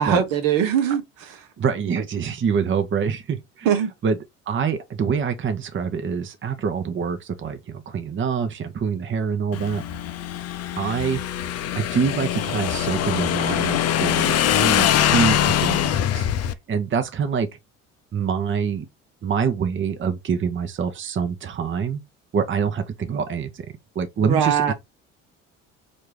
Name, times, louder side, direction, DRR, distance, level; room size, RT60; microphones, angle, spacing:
voice 1, 0.0-1.5 3.6-3.9 24.2-24.7, right 8 dB, 65° right, 1.0 m, -21 dB
voice 2, 1.6-3.7 4.0-4.2 4.5-9.8 10.8-11.2 11.7-16.3 16.7-17.5 18.1-18.9 19.2-22.0 22.3-23.7 23.9-24.7, right 6 dB, 35° right, 0.8 m, -25 dB
Motorcycle / Engine, 9.5-16.5, left 11 dB, 45° left, 0.6 m, -23 dB
4.3 x 2.6 x 3.3 m
hypercardioid pair, 60°, 36 cm